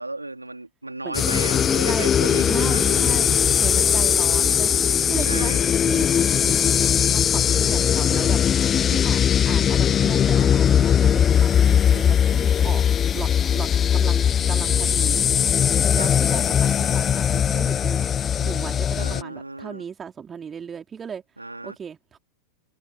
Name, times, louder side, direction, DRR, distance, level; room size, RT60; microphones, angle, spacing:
voice 1, 0.0-3.2 5.2-5.6 16.0-16.1 18.9-19.8 21.4-21.8, right 2 dB, 85° right, 3.3 m, -34 dB
sound 1, 1.1-19.2, left 8 dB, 25° left, 0.8 m, -20 dB
voice 2, 2.4-4.7 5.1-5.5 5.9-8.4 8.9-12.9 13.1-13.3 13.5-15.2 15.9-21.2 21.6-22.2, right 7 dB, 20° right, 4.0 m, -36 dB
figure-of-eight pair, 90°, 0 cm